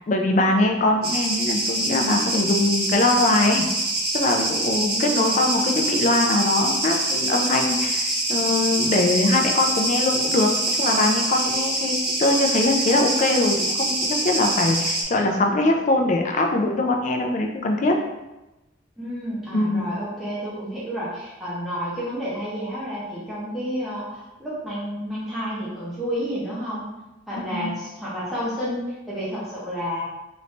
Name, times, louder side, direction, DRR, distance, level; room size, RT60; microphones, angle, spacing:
voice 1, 0.1-3.6 4.1-18.0 19.5-19.9 27.5-27.7, left 2 dB, 40° left, 3 dB, 0.4 m, -22 dB
sound 1, 1.0-15.0, right 2 dB, 50° right, 0.8 m, -25 dB
voice 2, 4.8-5.4 13.0-13.4 19.0-26.9 27.3-30.0, equal, ahead, -10 dB, 0.8 m, -30 dB
3.1 x 2.6 x 3.2 m, 1.0 s
head